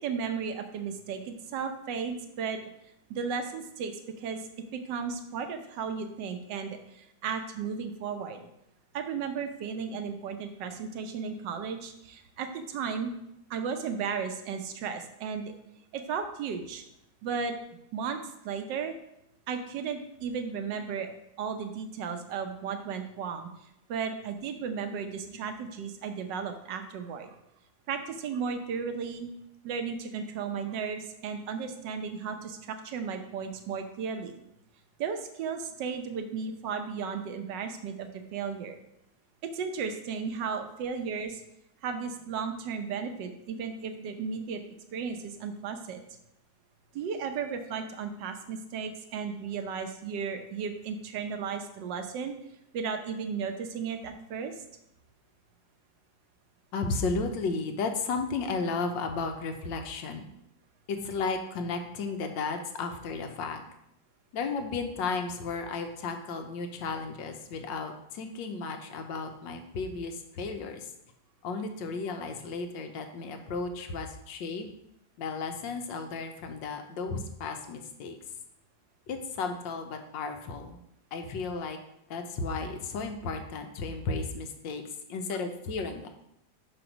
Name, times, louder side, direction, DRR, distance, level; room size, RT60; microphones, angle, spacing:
voice 1, 0.0-2.6 3.1-8.4 8.9-13.1 13.5-15.5 15.9-16.8 17.2-17.5 17.9-18.2 18.4-18.9 19.5-21.1 21.4-23.5 23.9-27.4 27.9-29.3 29.6-34.4 35.0-38.8 39.5-41.4 41.8-44.6 44.9-46.0 46.9-52.4 52.7-54.5, right 6 dB, 70° right, 7 dB, 1.4 m, -34 dB
voice 2, 56.7-60.3 60.9-63.6 64.3-70.9 71.4-74.7 75.2-78.2 79.1-80.8 81.1-81.8 82.1-84.8 85.1-86.1, left 4 dB, 75° left, 6 dB, 1.5 m, -34 dB
6.1 x 4.9 x 5.1 m, 0.81 s
omnidirectional pair, 2.1 m